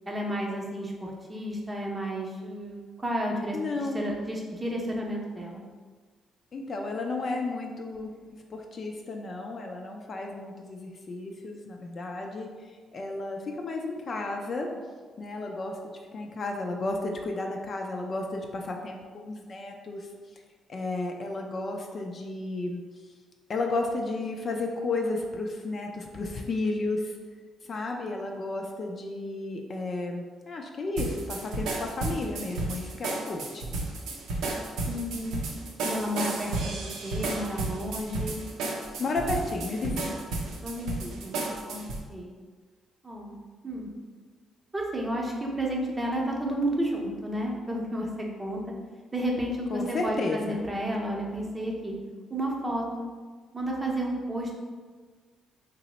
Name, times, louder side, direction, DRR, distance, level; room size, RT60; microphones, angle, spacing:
voice 1, 0.1-5.6 34.9-35.4 35.8-38.4 40.6-41.8 42.1-42.3 43.0-43.4 43.6-43.9 44.7-48.1 48.4-48.6 49.1-51.9 52.3-53.1 53.5-54.6, right 1 dB, 20° right, -1 dB, 0.6 m, -32 dB
voice 2, 3.5-4.0 6.5-8.1 8.5-12.5 12.9-14.7 15.2-15.8 16.1-20.1 20.7-22.8 23.5-27.1 27.7-33.6 39.0-40.2 49.7-50.6, left 2 dB, 45° left, 2 dB, 0.4 m, -32 dB
sound 1, 31.0-42.0, right 2 dB, 90° right, 0.5 m, -33 dB
2.9 x 2.0 x 4.0 m, 1.5 s
cardioid pair, 90°, 0 cm